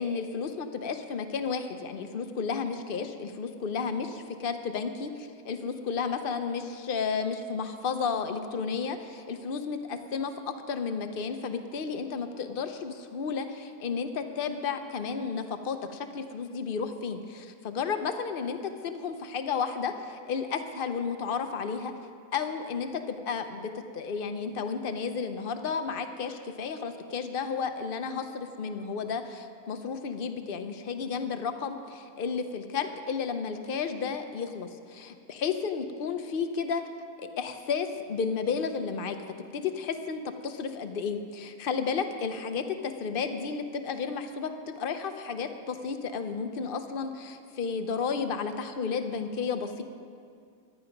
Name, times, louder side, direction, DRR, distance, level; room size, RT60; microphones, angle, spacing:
voice 1, 0.0-21.9 22.3-36.8 37.2-39.2 39.5-49.8, left 5 dB, 55° left, 7 dB, 0.6 m, -32 dB
15.0 x 11.0 x 5.2 m, 2.3 s
omnidirectional pair, 1.9 m